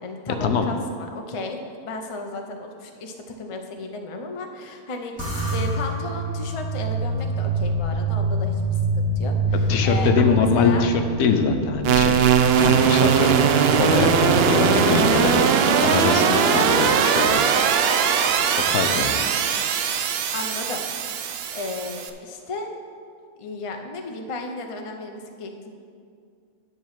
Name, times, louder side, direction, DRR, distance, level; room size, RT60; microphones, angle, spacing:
voice 1, 0.0-1.6 1.8-8.6 9.0-10.9 20.3-20.8 21.5-22.7 23.4-25.7, left 3 dB, 35° left, 3 dB, 0.5 m, -34 dB
sound 1, 5.2-15.8, right 1 dB, 15° left, 1.9 m, -27 dB
voice 2, 9.7-10.9 11.2-13.4 13.7-15.3 15.8-17.5 18.7-19.2, left 5 dB, 80° left, 6 dB, 1.2 m, -23 dB
sound 2, 11.8-22.1, right 7 dB, 70° right, 0.6 m, -20 dB
10.5 x 3.9 x 7.4 m, 2.3 s
omnidirectional pair, 1.6 m